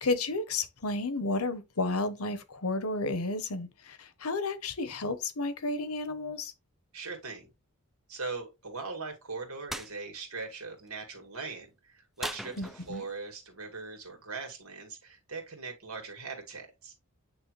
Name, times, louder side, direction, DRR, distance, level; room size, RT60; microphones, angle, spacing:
voice 1, 0.0-6.5 12.6-13.0, left 2 dB, 90° left, 1.0 m, -32 dB
voice 2, 6.9-7.5 8.1-16.9, right 4 dB, 85° right, 2.4 m, -40 dB
sound 1, 9.7-9.9 12.2-13.2, equal, ahead, 0.3 m, -38 dB
9.0 x 3.3 x 3.2 m
head